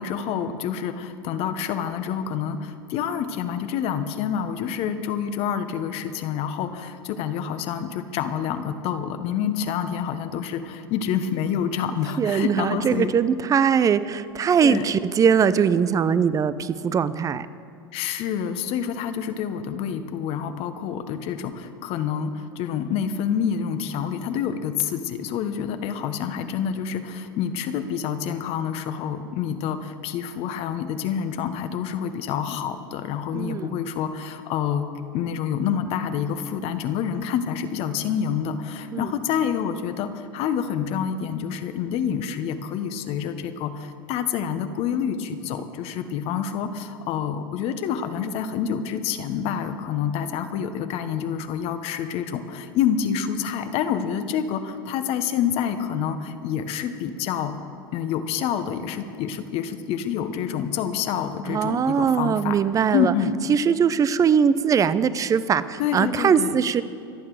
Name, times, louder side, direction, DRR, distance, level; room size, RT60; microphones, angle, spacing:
voice 1, 0.0-13.1 14.6-14.8 17.9-34.9 35.1-57.6 57.9-62.6 62.9-63.4 65.8-66.6, left 8 dB, 50° left, 9 dB, 1.2 m, -27 dB
voice 2, 12.2-17.5 33.3-33.7 38.9-39.1 61.5-63.1 63.5-66.8, right 7 dB, 25° right, 15 dB, 0.6 m, -21 dB
25.5 x 8.7 x 4.9 m, 2.5 s
hypercardioid pair, 90°, 13 cm